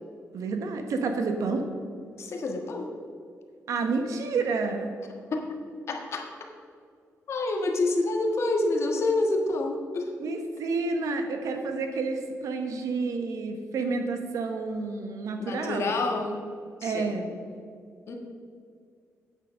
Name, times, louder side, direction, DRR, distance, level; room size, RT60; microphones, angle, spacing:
voice 1, 0.3-1.6 3.7-4.9 10.2-15.8 16.8-17.3, right 4 dB, 85° right, 5 dB, 1.2 m, -29 dB
voice 2, 2.2-2.9 5.3-5.6 5.9-6.3 7.3-10.1 15.4-16.5 16.8-17.1 18.1-18.2, left 2 dB, 55° left, 2 dB, 1.5 m, -28 dB
8.8 x 8.5 x 5.2 m, 2.2 s
wide cardioid pair, 140°, 5 cm